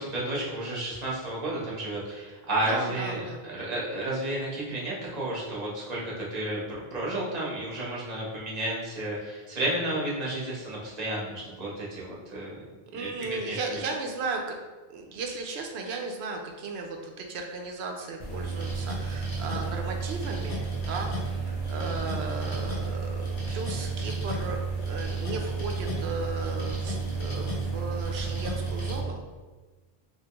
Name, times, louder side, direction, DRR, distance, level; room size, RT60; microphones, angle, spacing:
voice 1, 0.0-12.6 12.9-13.1 13.4-13.8, right 1 dB, 40° right, -5 dB, 1.0 m, -32 dB
voice 2, 2.7-3.6 12.9-14.6 14.9-29.2, right 3 dB, 85° right, 2 dB, 0.8 m, -36 dB
sound 1, 18.2-29.0, right 4 dB, 55° left, 1.0 m, -31 dB
3.3 x 2.9 x 2.9 m, 1.3 s
omnidirectional pair, 1.1 m